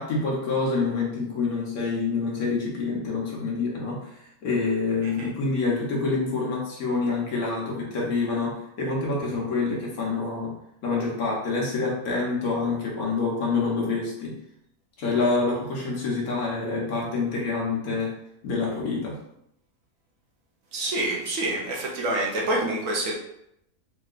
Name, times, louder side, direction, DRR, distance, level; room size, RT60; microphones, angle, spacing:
voice 1, 0.0-4.1 4.4-10.5 10.8-14.3 15.0-18.1 18.4-19.1, left 3 dB, 70° left, -4 dB, 1.4 m, -27 dB
voice 2, 20.7-23.1, right 2 dB, 65° right, -2 dB, 0.9 m, -27 dB
3.7 x 2.9 x 2.4 m, 0.79 s
omnidirectional pair, 1.6 m